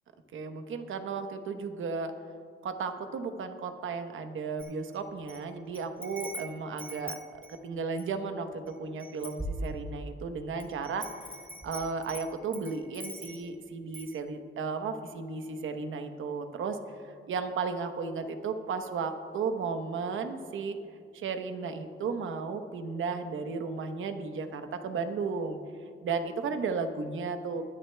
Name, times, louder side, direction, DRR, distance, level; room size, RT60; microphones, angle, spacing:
voice 1, 0.3-2.1 2.6-11.1 11.6-16.8 17.3-20.8 21.1-25.6 26.0-27.6, right 5 dB, 75° right, 7 dB, 1.0 m, -34 dB
Wind chime, 4.6-5.4 5.7-8.2 8.7-8.8 9.0-10.1 10.6-13.5 13.9-14.2, equal, 10° right, 1.5 m, -41 dB
22.0 x 11.0 x 2.2 m, 2.3 s
cardioid pair, 130°, 21 cm